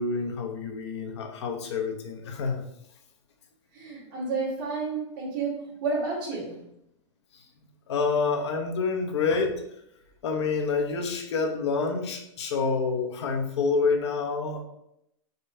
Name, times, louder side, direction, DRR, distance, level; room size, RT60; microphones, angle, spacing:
voice 1, 0.0-2.6 7.9-9.5 10.2-14.6, left 4 dB, 60° left, 5 dB, 1.1 m, -27 dB
voice 2, 3.7-6.7, right 4 dB, 35° right, -4 dB, 2.2 m, -31 dB
5.3 x 3.3 x 5.5 m, 0.78 s
supercardioid pair, 180°, 16 cm